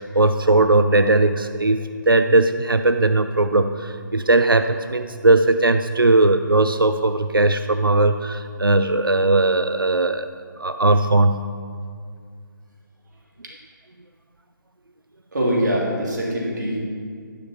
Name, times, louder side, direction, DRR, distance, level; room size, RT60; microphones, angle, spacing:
voice 1, 0.0-10.3 10.6-11.5, right 2 dB, 85° right, 9 dB, 0.5 m, -18 dB
voice 2, 15.3-16.8, equal, 60° right, -4 dB, 2.9 m, -23 dB
12.0 x 5.4 x 7.2 m, 2.2 s
figure-of-eight pair, 145°, 11 cm